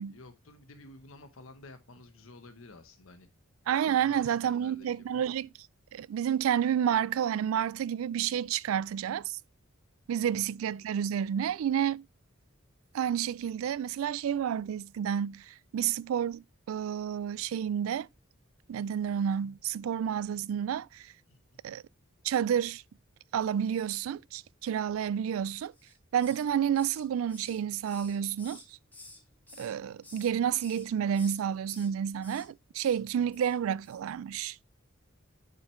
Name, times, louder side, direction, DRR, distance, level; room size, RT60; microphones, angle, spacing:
voice 1, 0.0-3.3 3.9-5.3 10.2-10.3 21.3-21.4 33.0-33.1, left 2 dB, 80° left, 1.0 m, -52 dB
voice 2, 3.7-5.5 5.9-9.4 10.1-12.0 12.9-18.1 18.7-21.1 21.6-21.8 22.2-22.8 23.3-25.7 26.1-28.8 29.6-34.6, right 9 dB, 85° right, 0.3 m, -30 dB
Hiss, 25.7-26.5 26.7-29.2 29.5-30.3 30.6-30.9 31.1-31.9 32.2-32.5 32.7-33.0 33.3-33.6 33.8-34.0, left 2 dB, 10° left, 2.2 m, -51 dB
7.6 x 6.1 x 3.1 m
head